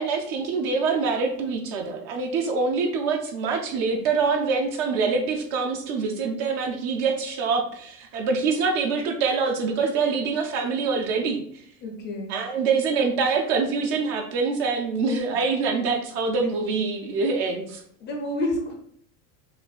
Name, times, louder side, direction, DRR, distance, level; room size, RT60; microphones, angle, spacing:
voice 1, 0.0-11.4 12.3-17.8, right 4 dB, 40° right, 3 dB, 0.4 m, -25 dB
voice 2, 11.8-12.4 15.0-15.2 16.4-16.5 18.0-18.7, left 2 dB, 25° left, 2 dB, 0.5 m, -29 dB
6.3 x 2.2 x 2.3 m, 0.65 s
supercardioid pair, 150°, 46 cm